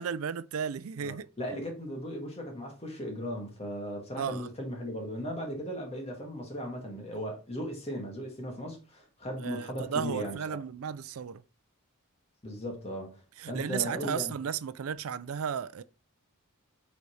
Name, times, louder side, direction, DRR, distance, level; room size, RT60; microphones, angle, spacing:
voice 1, 0.0-1.3 4.2-4.5 9.4-11.4 13.4-15.8, right 7 dB, 65° right, 0.4 m, -34 dB
voice 2, 1.0-10.4 12.4-13.2 13.5-14.3, equal, 30° left, 2.1 m, -37 dB
8.2 x 4.1 x 3.3 m
head